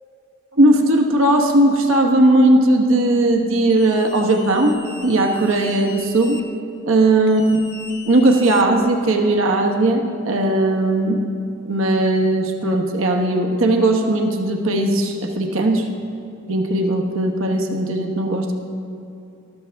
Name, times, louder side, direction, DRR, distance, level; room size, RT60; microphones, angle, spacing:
voice 1, 0.5-4.7 5.0-6.4 6.8-7.6 8.0-11.2 11.6-15.9 16.5-18.5, right 1 dB, 70° right, 2 dB, 1.0 m, -17 dB
sound 1, 3.7-6.4 7.3-9.1, left 3 dB, 55° left, 1.3 m, -39 dB
13.5 x 13.0 x 3.4 m, 2.7 s
head